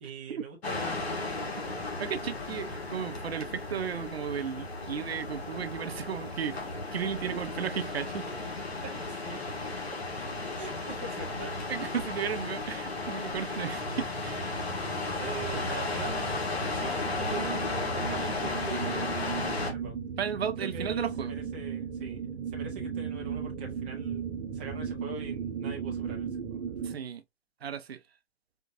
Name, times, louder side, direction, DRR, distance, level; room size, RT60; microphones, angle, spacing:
voice 1, 0.0-1.9 3.1-3.3 7.3-7.4 8.3-8.4 8.8-9.4 10.6-11.5 15.2-16.5 16.7-17.6 17.9-20.0 20.6-24.3 24.5-26.7, right 4 dB, 10° right, 0.4 m, -43 dB
sound 1, 0.6-19.7, left 3 dB, 70° left, 1.5 m, -34 dB
voice 2, 2.0-8.3 11.7-14.5 20.2-21.3 26.8-27.2 27.6-28.0, right 8 dB, 70° right, 0.5 m, -34 dB
sound 2, 13.7-27.0, right 7 dB, 50° right, 0.9 m, -37 dB
4.3 x 2.3 x 2.5 m
figure-of-eight pair, 130°, 33 cm